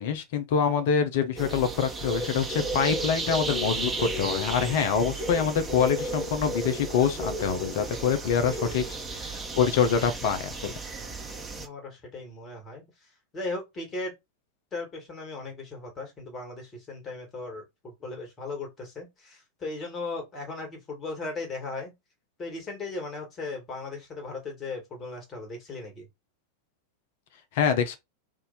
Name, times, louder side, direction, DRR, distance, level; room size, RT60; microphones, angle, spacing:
voice 1, 0.0-8.8 9.1-10.7 27.5-28.0, left 7 dB, 50° left, 0.7 m, -25 dB
sound 1, 1.4-11.7, right 2 dB, 10° right, 1.1 m, -33 dB
voice 2, 11.5-14.1 14.7-21.9 22.4-26.1, left 3 dB, 25° left, 2.0 m, -37 dB
3.6 x 2.7 x 4.1 m
figure-of-eight pair, 90°, 0 cm